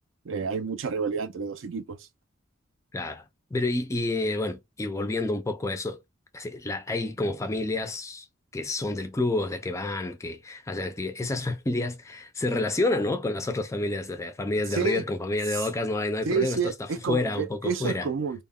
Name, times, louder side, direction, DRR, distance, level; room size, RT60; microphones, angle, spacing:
voice 1, 0.2-2.1 14.7-15.0 15.5-15.6 16.2-18.4, right 5 dB, 70° right, 0.4 m, -29 dB
voice 2, 2.9-3.2 3.5-6.0 6.3-8.3 8.5-16.6 17.1-18.1, left 2 dB, 15° left, 0.3 m, -29 dB
2.2 x 2.1 x 3.4 m
head